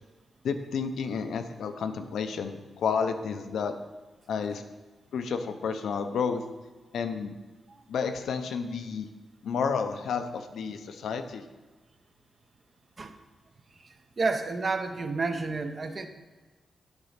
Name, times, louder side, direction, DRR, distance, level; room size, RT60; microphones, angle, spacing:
voice 1, 0.4-3.7 4.3-4.6 5.1-6.4 6.9-7.4 7.9-9.1 9.4-11.4, left 6 dB, 85° left, 8 dB, 0.6 m, -31 dB
voice 2, 13.8-16.1, right 3 dB, 40° right, 7 dB, 0.7 m, -30 dB
9.7 x 4.0 x 5.7 m, 1.3 s
cardioid pair, 95°, 0 cm